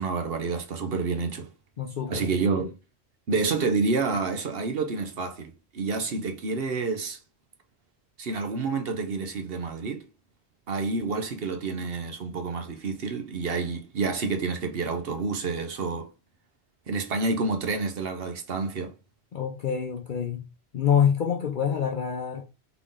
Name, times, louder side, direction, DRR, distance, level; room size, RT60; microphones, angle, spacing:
voice 1, 0.0-1.5 2.1-2.7 3.3-7.2 8.2-10.1 10.7-16.1 16.9-18.9, right 4 dB, 65° right, 1.0 m, -29 dB
voice 2, 1.8-2.3 19.3-20.4 20.7-22.4, left 8 dB, 55° left, 0.7 m, -26 dB
3.9 x 3.6 x 3.6 m
omnidirectional pair, 1.1 m